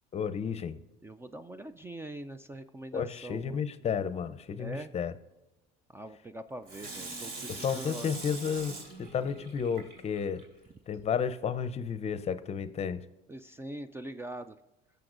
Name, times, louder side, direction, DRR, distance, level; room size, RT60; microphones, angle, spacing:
voice 1, 0.1-0.8 2.9-5.1 7.5-10.4 10.9-13.0, left 7 dB, 35° left, 13 dB, 0.6 m, -32 dB
voice 2, 1.0-3.7 4.6-4.9 5.9-8.1 13.3-14.6, right 1 dB, 15° right, 11 dB, 0.4 m, -43 dB
Water tap faucet / Sink (filling or washing), 6.7-10.4 10.9-11.0, right 3 dB, 60° right, 3.3 m, -43 dB
17.0 x 6.8 x 2.5 m, 1.0 s
supercardioid pair, 105°, 19 cm